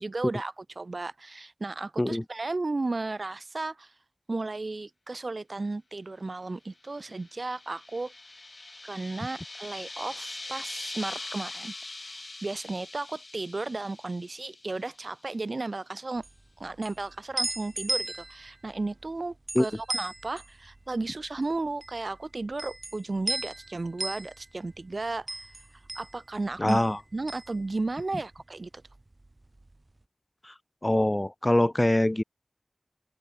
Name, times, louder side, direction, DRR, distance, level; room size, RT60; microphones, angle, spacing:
voice 1, 0.0-3.9 4.3-8.1 8.8-16.2 16.6-25.5 25.9-26.8 27.1-28.7, right 3 dB, 80° right, 4.8 m, -34 dB
sound 1, 6.9-15.2, left 2 dB, 70° left, 3.9 m, -42 dB
sound 2, 16.2-28.4 28.7-29.8, right 2 dB, 50° right, 4.7 m, -37 dB
voice 2, 26.6-27.0 30.4-30.5 30.8-32.2, left 1 dB, 30° left, 0.5 m, -24 dB
open air
wide cardioid pair, 45°, 0 cm